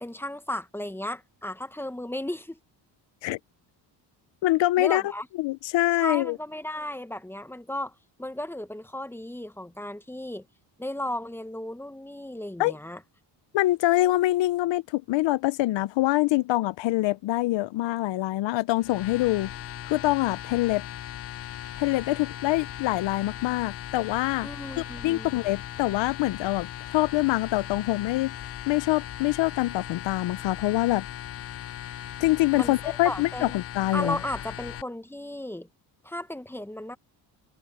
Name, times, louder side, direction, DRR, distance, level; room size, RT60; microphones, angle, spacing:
voice 1, 0.0-2.6 4.8-5.3 6.0-10.4 10.8-13.0 24.4-25.3 32.5-33.5 33.9-35.7 36.0-37.0, left 1 dB, 5° left, 1.0 m, -35 dB
voice 2, 4.4-5.1 5.4-6.4 12.6-12.7 13.5-19.5 19.9-20.8 21.8-24.5 25.0-28.3 28.7-31.1 32.2-34.2, left 17 dB, 80° left, 0.7 m, -25 dB
sound 1, 18.8-34.8, left 11 dB, 35° left, 0.4 m, -38 dB
cardioid pair, 95°, 44 cm